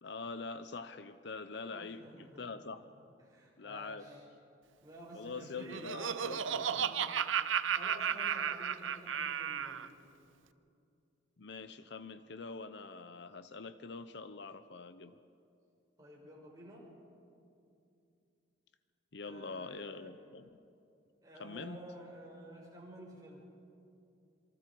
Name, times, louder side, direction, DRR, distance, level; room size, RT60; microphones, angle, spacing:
voice 1, 0.0-2.8 3.6-4.1 5.1-6.9 11.4-15.1 19.1-20.5 21.4-21.8, left 4 dB, 60° left, 12 dB, 0.7 m, -44 dB
voice 2, 1.7-2.7 3.2-4.2 4.8-7.2 7.7-9.9 16.0-16.8 19.2-20.1 21.2-23.4, right 1 dB, 20° right, -4 dB, 5.4 m, -51 dB
Laughter, 5.4-9.9, right 8 dB, 80° right, 0.7 m, -34 dB
27.0 x 23.5 x 4.6 m, 2.5 s
head